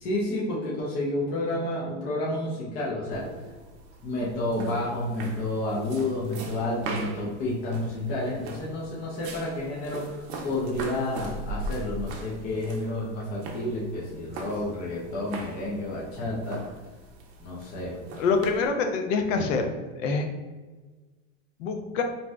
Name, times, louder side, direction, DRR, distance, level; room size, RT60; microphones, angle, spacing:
voice 1, 0.0-3.3 4.0-16.6 17.4-18.0, left 1 dB, 25° left, -6 dB, 0.3 m, -30 dB
sound 1, 3.1-18.7, right 2 dB, 60° right, 0.6 m, -40 dB
voice 2, 18.1-19.7 20.0-20.3 21.6-22.0, left 4 dB, 70° left, 5 dB, 0.6 m, -25 dB
2.6 x 2.1 x 3.3 m, 1.3 s
supercardioid pair, 145°, 39 cm